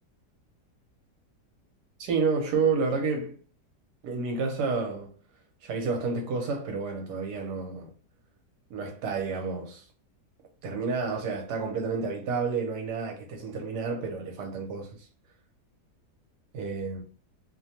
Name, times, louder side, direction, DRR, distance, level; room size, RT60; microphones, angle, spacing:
voice 1, 2.0-3.4 4.0-5.1 5.6-7.9 8.7-9.8 10.6-14.9 16.5-17.0, right 4 dB, 75° right, 1.3 m, -30 dB
3.1 x 2.2 x 2.7 m
omnidirectional pair, 1.8 m